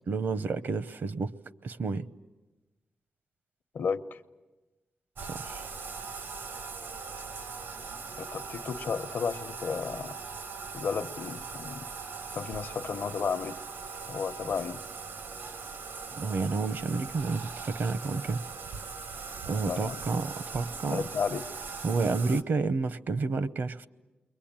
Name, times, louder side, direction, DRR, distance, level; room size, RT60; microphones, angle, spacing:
voice 1, 0.1-1.3 1.6-2.1 5.2-5.7 16.1-18.4 19.5-21.0 21.8-23.9, right 4 dB, 65° right, 0.8 m, -30 dB
voice 2, 3.7-4.2 8.2-10.1 10.7-11.9 12.3-13.6 14.1-14.8 19.6-20.0 20.9-21.4, left 6 dB, 70° left, 0.9 m, -33 dB
Bathtub (filling or washing), 5.2-22.4, right 5 dB, 85° right, 1.3 m, -40 dB
29.0 x 22.5 x 8.8 m
wide cardioid pair, 100°, 4 cm